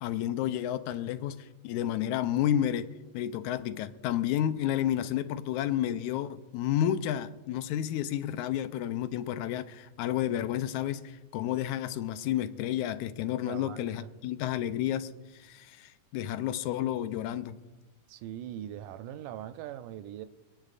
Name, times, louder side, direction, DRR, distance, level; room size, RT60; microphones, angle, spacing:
voice 1, 0.0-17.6, left 11 dB, 80° left, 12 dB, 1.9 m, -31 dB
voice 2, 13.5-14.1 18.1-20.3, right 11 dB, 85° right, 11 dB, 2.1 m, -41 dB
28.5 x 9.9 x 2.5 m, 1.2 s
omnidirectional pair, 3.7 m